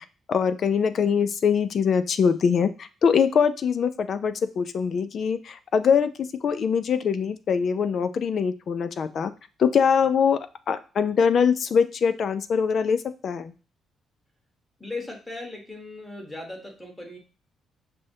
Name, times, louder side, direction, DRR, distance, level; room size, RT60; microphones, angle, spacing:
voice 1, 0.0-6.1 6.4-9.3 9.6-10.4 10.7-13.0 13.2-13.5, left 6 dB, 55° left, 12 dB, 0.3 m, -23 dB
voice 2, 14.8-17.2, left 2 dB, 10° left, 1 dB, 1.2 m, -37 dB
6.0 x 2.1 x 2.7 m, 0.34 s
cardioid pair, 90°, 0 cm